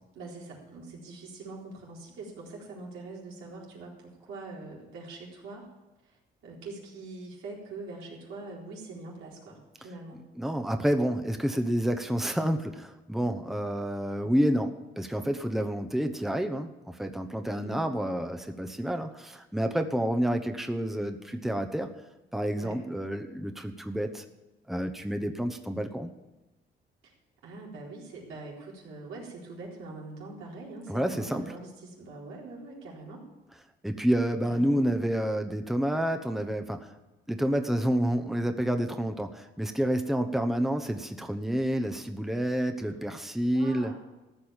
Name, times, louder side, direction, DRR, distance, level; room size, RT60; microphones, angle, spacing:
voice 1, 0.2-5.7 6.4-10.2 17.5-17.9 22.5-22.8 27.0-27.1 27.4-33.2 34.5-34.9 43.5-43.9, right 3 dB, 90° right, -3 dB, 4.1 m, -43 dB
voice 2, 10.4-21.9 22.3-24.2 24.7-26.1 30.9-31.4 33.8-36.9 37.3-43.9, equal, ahead, 6 dB, 1.0 m, -29 dB
14.5 x 6.1 x 8.9 m, 1.0 s
cardioid pair, 90°, 20 cm